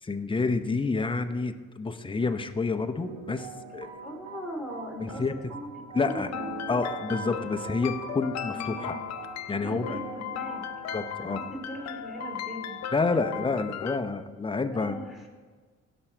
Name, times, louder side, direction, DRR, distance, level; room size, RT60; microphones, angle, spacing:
voice 1, 0.0-3.9 5.0-5.3 5.9-6.3 6.7-9.0 9.5-10.0 10.9-11.4 12.9-15.0, left 4 dB, 15° left, 8 dB, 0.7 m, -29 dB
sound 1, 3.0-13.0, right 5 dB, 75° right, 1.9 m, -42 dB
voice 2, 4.0-5.7 6.0-6.5 8.5-9.0 9.6-10.6 11.2-12.8 14.7-15.2, equal, ahead, 0 dB, 2.8 m, -39 dB
sound 2, 6.0-14.0, left 9 dB, 65° left, 0.6 m, -37 dB
16.0 x 6.1 x 4.5 m, 1.5 s
cardioid pair, 90°, 30 cm